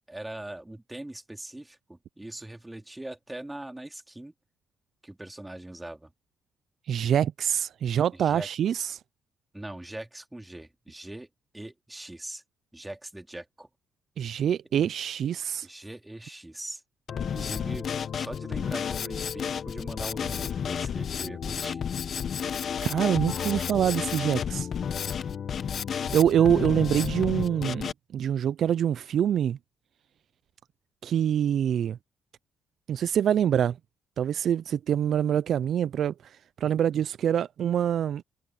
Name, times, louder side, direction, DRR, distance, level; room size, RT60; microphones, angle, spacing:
voice 1, 0.1-4.3 5.0-6.1 8.1-8.5 9.5-11.3 11.5-12.4 12.7-13.7 15.6-16.8 17.2-21.8, right 1 dB, 10° right, 2.7 m, -41 dB
voice 2, 6.9-9.0 14.2-15.7 22.8-24.7 26.1-29.6 31.0-32.0 32.9-33.8 34.2-36.3 36.6-38.2, right 9 dB, 65° right, 0.4 m, -25 dB
Drum kit, 17.1-27.9, left 7 dB, 55° left, 1.0 m, -31 dB
cardioid pair, 90°, 0 cm